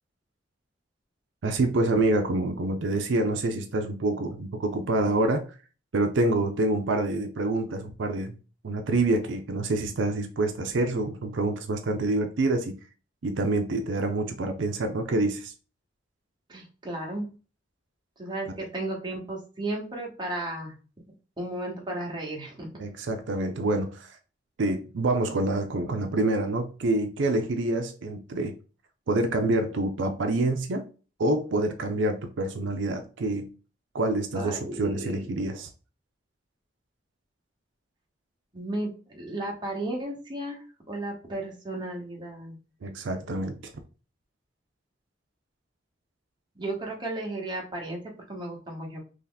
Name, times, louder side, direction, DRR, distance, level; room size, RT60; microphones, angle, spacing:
voice 1, 1.4-5.5 5.9-8.4 8.6-12.8 13.2-15.5 22.8-24.2 24.6-28.6 29.1-30.9 31.2-33.5 33.9-35.7 42.8-43.7, right 2 dB, 80° right, 0.5 m, -27 dB
voice 2, 16.5-17.3 18.2-20.8 21.4-22.7 34.3-35.2 38.5-42.6 46.5-49.0, right 1 dB, 25° right, 1.1 m, -34 dB
3.0 x 2.8 x 3.9 m
head